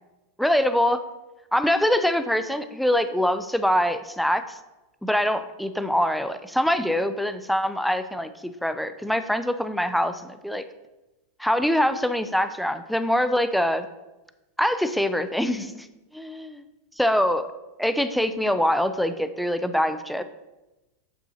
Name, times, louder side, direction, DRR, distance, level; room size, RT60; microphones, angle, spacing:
voice 1, 0.4-1.0 1.5-4.6 5.0-10.6 11.4-13.9 14.6-15.9 16.1-16.5 17.0-17.5 17.8-20.2, equal, ahead, 10 dB, 0.5 m, -24 dB
8.4 x 7.3 x 2.9 m, 1.0 s
supercardioid pair, 125°, 0 cm